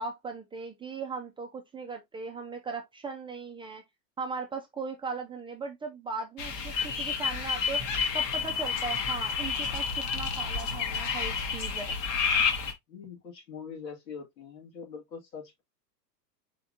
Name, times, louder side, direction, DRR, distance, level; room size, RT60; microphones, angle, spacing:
voice 1, 0.0-3.8 4.2-7.8 8.1-9.9 10.1-12.0, right 4 dB, 10° right, 0.5 m, -38 dB
sound 1, 6.4-12.7, left 6 dB, 35° left, 1.2 m, -30 dB
voice 2, 12.9-15.6, left 6 dB, 75° left, 2.1 m, -43 dB
4.5 x 3.5 x 2.6 m
hypercardioid pair, 100°, 50 cm